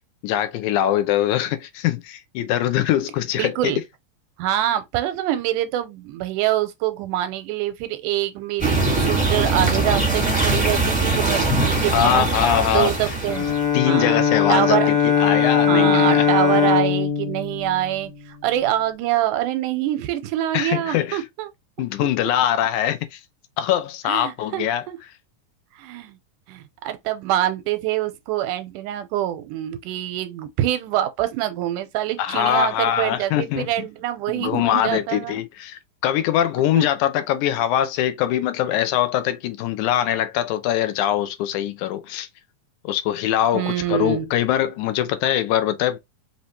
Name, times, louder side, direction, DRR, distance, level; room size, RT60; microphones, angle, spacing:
voice 1, 0.2-3.7 11.9-13.1 13.7-16.3 20.5-21.2 21.8-23.2 23.6-24.8 32.2-33.7 34.3-42.3 42.8-46.0, left 11 dB, 80° left, 1.9 m, -22 dB
voice 2, 3.4-3.8 4.4-12.3 12.7-13.5 13.8-14.9 15.7-21.5 24.1-25.0 25.8-26.2 26.5-35.4 36.8-36.9 43.5-44.3, right 12 dB, 90° right, 2.2 m, -25 dB
sound 1, 8.6-13.7, right 2 dB, 5° right, 0.7 m, -21 dB
Bowed string instrument, 13.3-18.5, left 8 dB, 60° left, 1.9 m, -20 dB
5.5 x 2.8 x 3.0 m
omnidirectional pair, 3.7 m